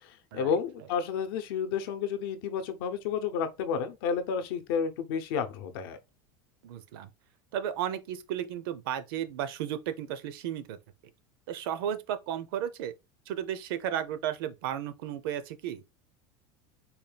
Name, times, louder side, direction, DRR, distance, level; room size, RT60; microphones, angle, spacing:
voice 1, 0.3-6.0, left 6 dB, 75° left, 0.7 m, -31 dB
voice 2, 6.6-7.1 7.5-10.8 11.5-12.9 13.3-15.8, right 10 dB, 75° right, 0.6 m, -34 dB
4.2 x 2.3 x 3.3 m
supercardioid pair, 150°, 12 cm